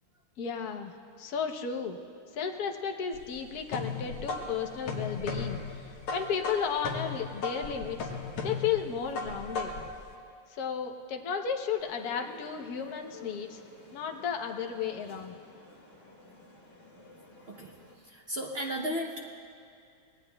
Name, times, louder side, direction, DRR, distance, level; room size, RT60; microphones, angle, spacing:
voice 1, 0.4-2.0 2.3-5.6 6.1-8.1 8.4-9.7 10.5-13.6 13.9-15.3, left 7 dB, 60° left, 4 dB, 1.2 m, -33 dB
sound 1, 3.1-10.0, left 4 dB, 85° left, 2.0 m, -36 dB
sound 2, 11.8-17.9, left 3 dB, 35° left, 2.3 m, -51 dB
voice 2, 18.0-19.2, equal, 70° right, 0 dB, 0.5 m, -34 dB
25.0 x 18.5 x 2.3 m, 2.4 s
omnidirectional pair, 2.2 m